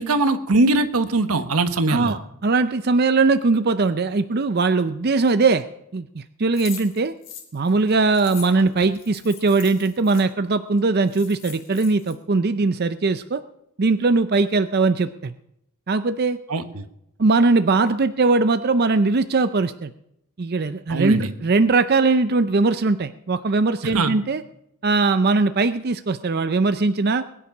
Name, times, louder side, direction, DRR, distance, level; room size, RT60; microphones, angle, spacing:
voice 1, 0.0-2.2 16.5-16.8 20.9-21.3 23.9-24.2, right 2 dB, 85° right, 10 dB, 1.3 m, -21 dB
voice 2, 1.9-5.6 5.9-7.1 7.5-13.4 13.8-15.3 15.9-16.4 17.2-19.9 20.4-24.4 24.8-27.2, right 3 dB, 45° right, 11 dB, 0.5 m, -20 dB
sound 1, 6.5-10.2 10.8-10.9 11.0-12.1, left 9 dB, 55° left, 3.1 m, -41 dB
21.0 x 10.0 x 6.1 m, 0.78 s
head